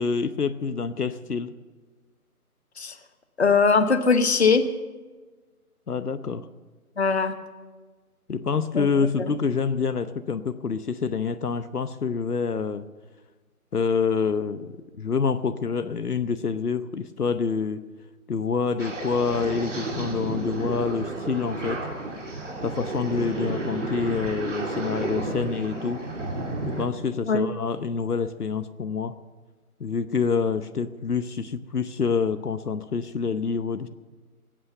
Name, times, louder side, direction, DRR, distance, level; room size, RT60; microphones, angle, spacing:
voice 1, 0.0-1.5 5.9-6.5 8.3-12.9 13.7-17.8 18.3-21.8 22.6-26.0 26.6-29.1 29.8-33.9, left 5 dB, 80° left, 11 dB, 0.9 m, -27 dB
voice 2, 3.4-4.6 7.0-7.3 8.7-8.9 9.2-9.3 27.2-27.5, left 4 dB, 45° left, 9 dB, 1.1 m, -21 dB
sound 1, 18.8-26.8, right 2 dB, 50° right, 2.6 m, -32 dB
20.0 x 8.8 x 6.7 m, 1.3 s
figure-of-eight pair, 160°, 45 cm